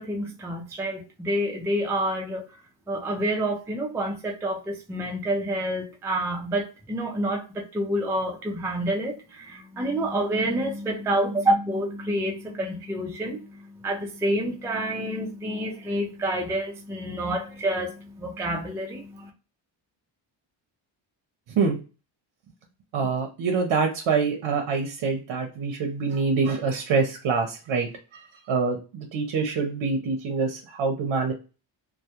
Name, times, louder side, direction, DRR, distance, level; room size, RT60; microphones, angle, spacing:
voice 1, 0.0-2.5 2.9-19.3, right 1 dB, 5° right, 0.3 m, -28 dB
voice 2, 22.9-27.9 28.5-31.3, right 4 dB, 70° right, 0.6 m, -25 dB
2.2 x 2.1 x 2.8 m
cardioid pair, 105°, 47 cm